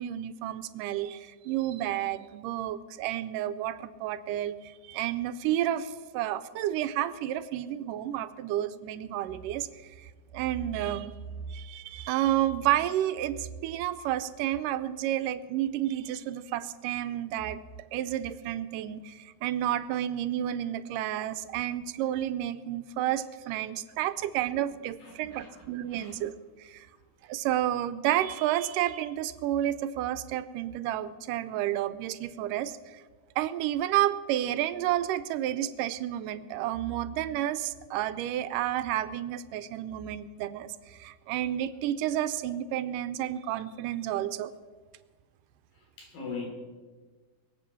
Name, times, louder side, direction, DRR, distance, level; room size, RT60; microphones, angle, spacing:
voice 1, 0.0-11.1 11.5-17.6 17.9-26.3 26.6-26.9 27.3-33.0 33.4-44.5, right 12 dB, 80° right, 12 dB, 2.1 m, -31 dB
voice 2, 25.0-26.1 45.8-46.5, left 5 dB, 80° left, 0 dB, 5.4 m, -42 dB
22.0 x 8.1 x 7.0 m, 1.4 s
omnidirectional pair, 4.0 m